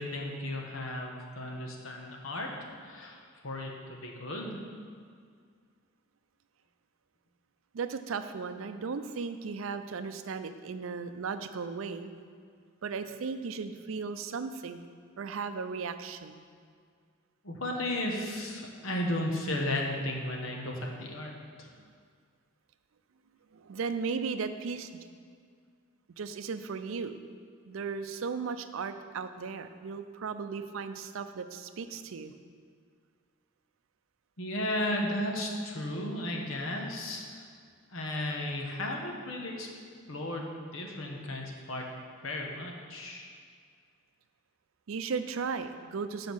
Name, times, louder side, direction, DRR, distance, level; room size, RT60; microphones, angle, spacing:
voice 1, 0.0-2.5 2.8-4.6 17.4-21.3 21.6-21.7 34.4-37.4 37.9-39.7 40.1-41.9 42.2-43.3, left 1 dB, 85° left, 1 dB, 1.2 m, -34 dB
voice 2, 7.7-12.1 12.8-14.9 15.2-16.4 23.5-25.0 26.2-27.1 27.7-32.3 44.9-46.3, right 5 dB, 80° right, 10 dB, 0.5 m, -36 dB
7.3 x 4.9 x 6.2 m, 2.1 s
head